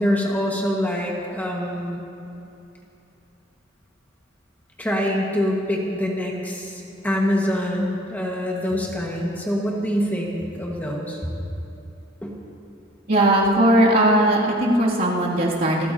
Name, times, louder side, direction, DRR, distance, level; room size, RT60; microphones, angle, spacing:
voice 1, 0.0-2.0 4.8-11.2 12.2-12.3, equal, 10° left, -2 dB, 1.6 m, -25 dB
voice 2, 13.1-15.9, right 1 dB, 50° right, -5 dB, 2.6 m, -18 dB
28.0 x 14.5 x 2.8 m, 2.9 s
head